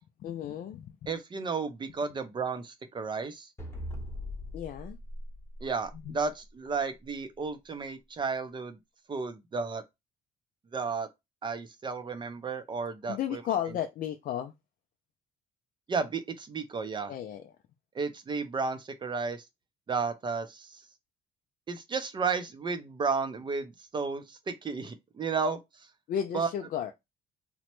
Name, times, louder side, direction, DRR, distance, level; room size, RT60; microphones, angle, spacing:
voice 1, 0.2-1.1 4.5-5.0 6.1-6.2 13.1-14.5 17.1-17.5 26.1-26.9, left 10 dB, 55° left, 0.4 m, -34 dB
voice 2, 1.1-3.5 5.6-8.8 9.1-9.8 10.7-11.1 11.4-13.4 15.9-17.1 17.9-19.5 19.9-20.8 21.7-25.9 26.3-26.5, right 4 dB, 30° right, 0.5 m, -33 dB
sound 1, 3.6-6.3, left 1 dB, 15° left, 0.9 m, -40 dB
2.9 x 2.1 x 3.0 m
cardioid pair, 110°, 17 cm